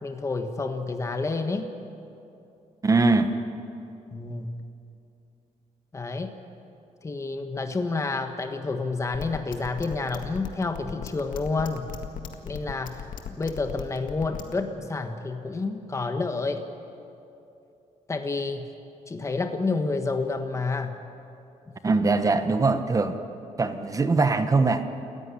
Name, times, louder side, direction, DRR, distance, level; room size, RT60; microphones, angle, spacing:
voice 1, 0.0-1.7 4.1-4.6 5.9-6.3 7.0-11.9 12.4-16.6 18.1-18.7 19.1-21.0, left 3 dB, 20° left, 6 dB, 1.4 m, -29 dB
voice 2, 2.8-3.4 21.8-23.2 23.6-24.8, right 3 dB, 25° right, 9 dB, 1.2 m, -22 dB
sound 1, 9.1-14.5, left 9 dB, 80° left, 1.9 m, -37 dB
28.0 x 14.5 x 10.0 m, 2.7 s
cardioid pair, 130°, 13 cm